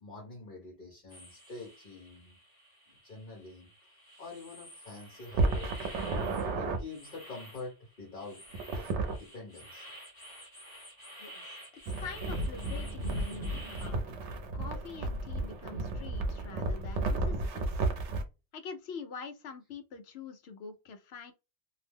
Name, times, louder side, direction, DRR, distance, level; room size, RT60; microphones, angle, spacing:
voice 1, 0.0-2.4 2.9-3.7 4.2-6.0 6.6-8.4 8.8-8.9 9.2-9.9, left 3 dB, 50° left, 1.1 m, -46 dB
sound 1, 1.1-13.9, equal, 20° left, 1.0 m, -51 dB
sound 2, 5.3-6.8 8.5-9.2 11.9-18.2, right 2 dB, 80° right, 1.0 m, -32 dB
voice 2, 12.0-14.0 14.5-17.7 18.5-21.3, left 5 dB, 65° left, 0.8 m, -45 dB
2.7 x 2.0 x 3.4 m
omnidirectional pair, 1.2 m